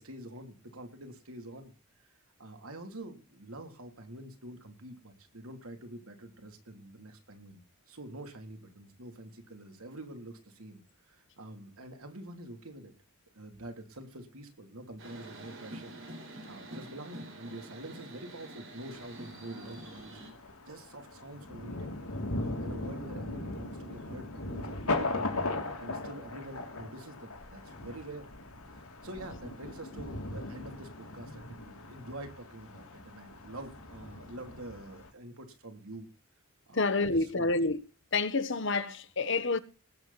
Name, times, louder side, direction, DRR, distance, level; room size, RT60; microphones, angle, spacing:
voice 1, 0.0-1.7 2.0-12.9 13.3-15.9 16.4-22.0 22.3-28.3 28.7-36.1 36.7-37.1 37.3-37.5, right 1 dB, 80° right, 3.2 m, -46 dB
sound 1, 15.0-20.3, right 1 dB, 60° right, 4.6 m, -46 dB
Thunder, 18.9-35.1, left 2 dB, 80° left, 3.0 m, -39 dB
voice 2, 36.7-37.8 38.1-39.6, left 3 dB, 55° left, 1.3 m, -28 dB
19.5 x 7.8 x 4.2 m
head